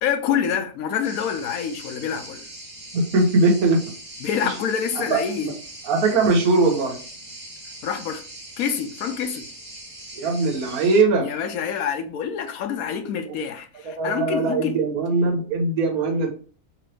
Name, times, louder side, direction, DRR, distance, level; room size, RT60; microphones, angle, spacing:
voice 1, 0.0-2.4 4.2-5.5 7.8-8.2 8.6-9.4 11.2-14.8, left 7 dB, 75° left, 1.0 m, -26 dB
sound 1, 1.0-11.0, right 1 dB, 35° right, 1.4 m, -41 dB
voice 2, 2.9-3.8 4.4-4.5 5.1-5.5 5.8-7.0 10.1-11.3 13.8-16.3, right 3 dB, 75° right, 1.5 m, -20 dB
3.4 x 3.0 x 3.2 m
omnidirectional pair, 1.6 m